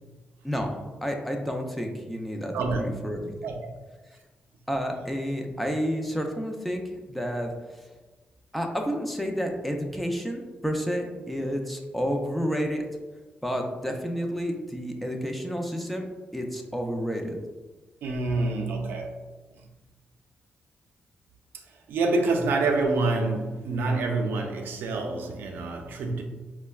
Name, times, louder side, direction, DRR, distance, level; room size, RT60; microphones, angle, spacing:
voice 1, 1.0-3.3 4.7-7.9 8.5-12.8 13.4-16.1 16.3-17.4, equal, ahead, 2 dB, 0.4 m, -30 dB
voice 2, 2.5-2.9 3.4-3.8 18.0-19.2 19.6-19.7 21.7-26.2, right 3 dB, 90° right, 2 dB, 0.4 m, -27 dB
4.2 x 2.1 x 2.3 m, 1.2 s
cardioid pair, 90°, 4 cm